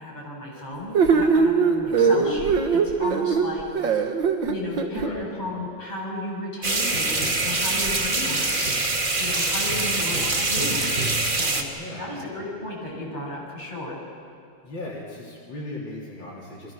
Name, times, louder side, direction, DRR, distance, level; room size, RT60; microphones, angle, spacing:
voice 1, 0.0-4.1 4.5-11.7 12.0-14.0, left 1 dB, 20° left, -4 dB, 7.2 m, -34 dB
sound 1, 0.9-5.1, right 5 dB, 70° right, 2.1 m, -21 dB
voice 2, 1.8-2.1 5.0-5.3 7.7-8.0 11.8-12.2 14.6-16.7, left 2 dB, 70° left, -4 dB, 4.0 m, -38 dB
sound 2, 6.6-11.6, right 2 dB, 25° right, 1.8 m, -24 dB
Tap, 6.9-12.2 14.8-14.9, right 3 dB, 55° right, 2.1 m, -38 dB
29.5 x 24.5 x 6.4 m, 2.5 s
omnidirectional pair, 2.1 m